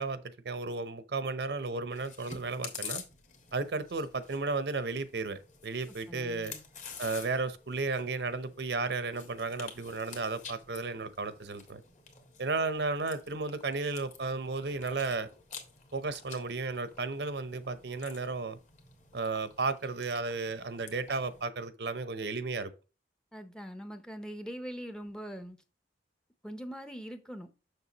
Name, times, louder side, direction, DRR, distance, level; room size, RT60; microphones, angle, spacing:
voice 1, 0.0-3.0 3.5-6.5 7.0-11.8 12.4-15.3 15.9-18.6 19.1-22.7, right 3 dB, 65° right, 0.7 m, -34 dB
Chewing mastication, 1.9-21.5, left 6 dB, 40° left, 1.5 m, -49 dB
voice 2, 6.1-6.6 23.3-25.6 26.4-27.5, equal, 5° left, 0.6 m, -42 dB
6.7 x 6.5 x 2.9 m
head